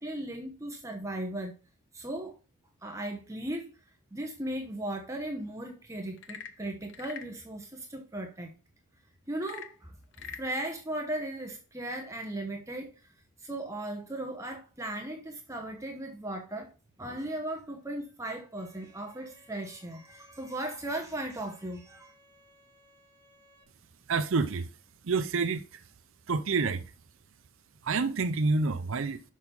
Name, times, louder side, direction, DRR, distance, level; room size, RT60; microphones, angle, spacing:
voice 1, 0.0-1.5 1.9-2.4 2.8-3.7 4.1-8.5 9.3-12.9 13.4-16.7 17.0-22.1, right 1 dB, 15° right, 1.0 m, -37 dB
Frog / Percussion / Wood, 6.1-7.4 9.4-10.5, left 8 dB, 55° left, 0.7 m, -44 dB
Bowed string instrument, 18.6-23.6, equal, 5° left, 2.7 m, -61 dB
voice 2, 24.1-24.7 25.0-25.8 26.3-26.8 27.8-29.2, right 4 dB, 60° right, 0.6 m, -28 dB
6.4 x 5.9 x 5.3 m
head